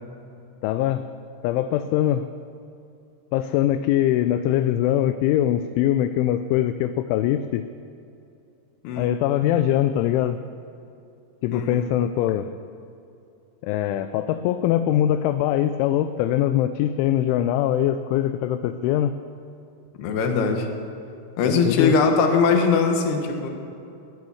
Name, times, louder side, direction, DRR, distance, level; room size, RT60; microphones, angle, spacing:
voice 1, 0.6-1.0 1.4-2.3 3.3-7.7 9.0-10.4 11.4-12.5 13.6-19.1 21.5-22.0, left 12 dB, 85° left, 10 dB, 2.8 m, -22 dB
voice 2, 11.5-11.8 20.0-20.7 21.4-23.5, left 5 dB, 65° left, 4 dB, 3.0 m, -21 dB
19.5 x 9.1 x 7.0 m, 2.6 s
omnidirectional pair, 5.7 m